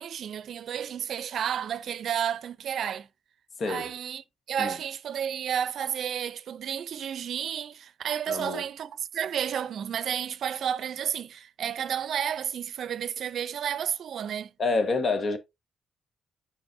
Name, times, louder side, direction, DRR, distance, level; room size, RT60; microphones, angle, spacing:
voice 1, 0.0-3.1 3.7-14.5, right 9 dB, 75° right, 0.5 m, -31 dB
voice 2, 3.6-3.9 4.6-4.7 8.3-8.6 14.6-15.4, left 3 dB, 50° left, 1.2 m, -27 dB
7.1 x 5.9 x 2.6 m
cardioid pair, 85°, 0 cm